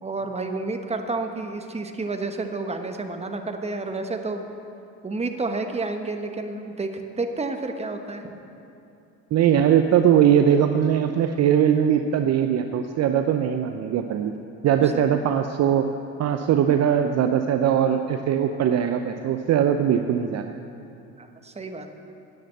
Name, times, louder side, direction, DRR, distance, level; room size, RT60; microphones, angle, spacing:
voice 1, 0.0-4.4 5.0-8.2 14.8-15.1 21.2-21.9, right 3 dB, 20° right, 5 dB, 1.2 m, -30 dB
voice 2, 9.3-14.3 14.6-15.9 16.2-20.5, right 9 dB, 45° right, 7 dB, 0.6 m, -20 dB
9.8 x 8.8 x 7.7 m, 2.7 s
hypercardioid pair, 70°, 35 cm